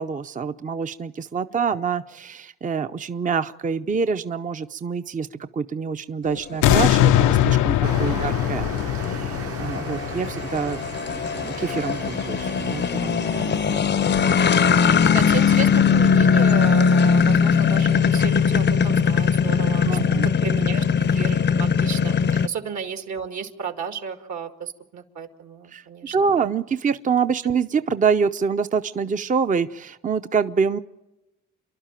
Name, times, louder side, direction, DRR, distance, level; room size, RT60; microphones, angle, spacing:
voice 1, 0.0-5.3 5.5-8.7 8.9-13.2 19.8-20.3 25.7-25.8 26.1-30.8, right 6 dB, 25° right, 10 dB, 0.6 m, -26 dB
sound 1, 6.4-22.5, left 6 dB, 35° left, 0.6 m, -20 dB
sound 2, 6.6-11.7 12.2-12.3, left 13 dB, 85° left, 0.7 m, -21 dB
sound 3, 7.8-13.8, right 7 dB, 50° right, 1.1 m, -36 dB
voice 2, 13.3-13.8 14.9-20.0 20.4-26.3, right 6 dB, 65° right, 7 dB, 2.1 m, -33 dB
29.5 x 11.5 x 9.0 m, 1.0 s
cardioid pair, 90°, 30 cm